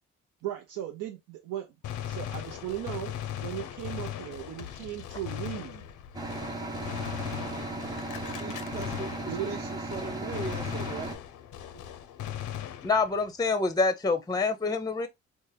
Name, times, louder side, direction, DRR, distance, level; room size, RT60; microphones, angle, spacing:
voice 1, 0.4-1.7 2.1-5.9 9.2-9.6 11.7-11.8, right 12 dB, 90° right, 0.6 m, -37 dB
Gunshot gunfire, 1.8-9.6 9.9-13.3, left 10 dB, 80° left, 0.6 m, -39 dB
sound 1, 6.1-11.2, right 2 dB, 15° right, 1.0 m, -36 dB
voice 2, 8.4-11.2, right 3 dB, 35° right, 0.5 m, -39 dB
voice 3, 12.8-15.1, left 4 dB, 15° left, 0.5 m, -26 dB
4.3 x 2.1 x 3.2 m
cardioid pair, 90°, 30 cm